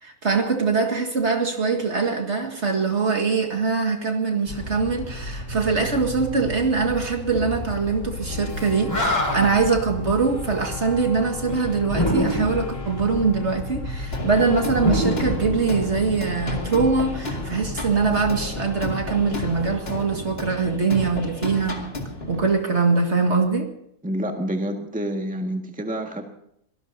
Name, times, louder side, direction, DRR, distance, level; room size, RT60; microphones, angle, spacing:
voice 1, 0.0-21.8 22.3-23.7, right 4 dB, 50° right, 3 dB, 2.2 m, -23 dB
sound 1, 4.5-19.7, left 2 dB, 60° left, 1.8 m, -34 dB
Animal, 8.6-8.7 8.9-9.7 11.9-12.7 14.7-16.1, left 1 dB, 10° left, 6.2 m, -24 dB
sound 2, 14.1-22.5, left 2 dB, 40° left, 2.5 m, -33 dB
voice 2, 24.0-26.3, right 1 dB, 5° right, 3 dB, 1.7 m, -28 dB
25.5 x 18.0 x 2.7 m, 0.73 s
omnidirectional pair, 1.5 m